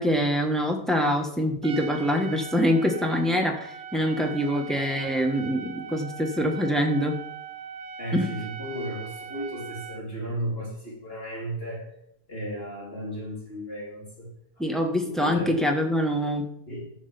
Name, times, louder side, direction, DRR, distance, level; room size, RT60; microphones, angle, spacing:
voice 1, 0.0-7.2 8.1-8.3 14.6-16.5, equal, ahead, 2 dB, 1.3 m, -25 dB
Trumpet, 1.6-10.1, right 6 dB, 65° right, 1.3 m, -40 dB
voice 2, 8.0-11.9 12.3-14.3 15.0-15.6 16.7-16.9, right 1 dB, 35° left, -4 dB, 3.8 m, -34 dB
12.0 x 6.5 x 6.9 m, 0.75 s
omnidirectional pair, 1.7 m